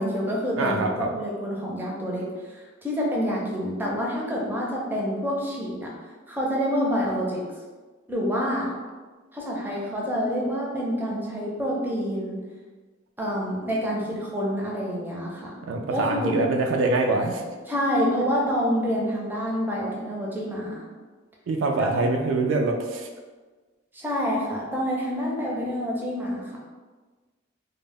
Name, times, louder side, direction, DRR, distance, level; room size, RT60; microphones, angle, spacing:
voice 1, 0.0-0.8 1.1-5.9 6.3-7.4 8.1-8.7 9.3-12.4 13.2-15.6 15.9-16.4 17.7-20.9 21.8-21.9 23.9-26.6, equal, 10° right, -4 dB, 0.4 m, -27 dB
voice 2, 0.6-1.1 15.7-17.6 21.5-23.1, right 2 dB, 75° right, 3 dB, 0.3 m, -24 dB
2.0 x 2.0 x 3.4 m, 1.3 s
head